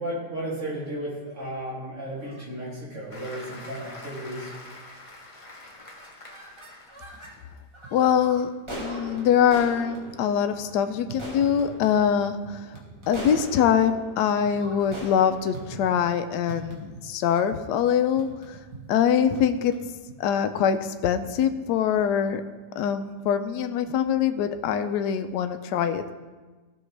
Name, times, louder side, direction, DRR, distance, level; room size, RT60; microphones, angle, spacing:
voice 1, 0.0-4.5, right 1 dB, 45° right, -6 dB, 2.9 m, -34 dB
sound 1, 1.3-1.7 2.2-2.5 3.1-3.4 3.7-3.8 4.1-4.5 5.0-5.4 5.7-7.3 7.7-16.9, right 1 dB, 20° right, 1.2 m, -42 dB
Applause, 3.1-7.6 8.1-8.3, left 2 dB, 25° left, 0.9 m, -45 dB
sound 2, 7.0-7.5 7.8-8.9 9.1-9.6 9.9-13.8 14.1-16.2 16.5-17.3 17.6-20.5, right 4 dB, 70° right, 2.2 m, -44 dB
voice 2, 7.9-12.6 13.1-18.3 18.9-19.7 20.2-22.4 22.8-26.1, left 8 dB, 80° left, 9 dB, 1.2 m, -23 dB
15.0 x 6.1 x 3.3 m, 1.3 s
omnidirectional pair, 1.8 m